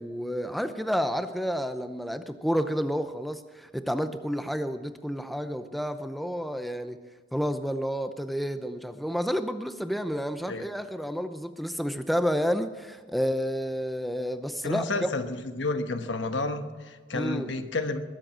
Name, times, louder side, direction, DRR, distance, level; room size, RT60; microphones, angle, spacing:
voice 1, 0.0-7.0 7.3-15.1 17.1-17.5, equal, ahead, 9 dB, 0.7 m, -30 dB
voice 2, 14.6-18.0, left 3 dB, 75° left, 8 dB, 1.2 m, -31 dB
21.0 x 7.6 x 7.5 m, 1.5 s
head